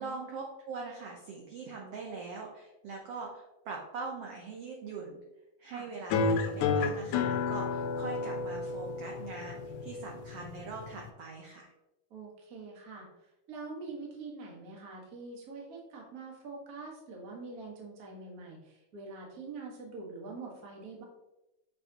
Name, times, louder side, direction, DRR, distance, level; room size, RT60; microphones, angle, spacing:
voice 1, 0.0-5.2 5.6-11.7, right 4 dB, 75° right, -1 dB, 1.3 m, -42 dB
sound 1, 6.1-11.1, left 4 dB, 80° left, 1.9 m, -32 dB
voice 2, 12.1-21.0, right 3 dB, 50° right, -1 dB, 1.1 m, -45 dB
6.7 x 5.7 x 2.9 m, 0.95 s
omnidirectional pair, 3.8 m